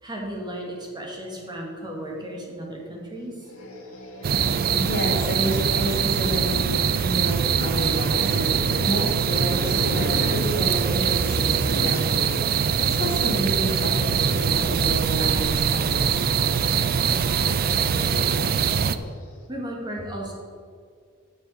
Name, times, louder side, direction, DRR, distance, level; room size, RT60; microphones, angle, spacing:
voice 1, 0.0-3.3 19.5-20.3, right 1 dB, 20° right, -2 dB, 1.7 m, -34 dB
sound 1, 3.4-12.1 12.4-19.2, left 1 dB, 85° left, 1.8 m, -38 dB
sound 2, 4.2-19.0, right 7 dB, 45° right, 0.4 m, -23 dB
voice 2, 4.7-8.4 8.8-16.0, equal, 50° left, 0 dB, 1.7 m, -29 dB
7.3 x 6.5 x 6.8 m, 2.1 s
head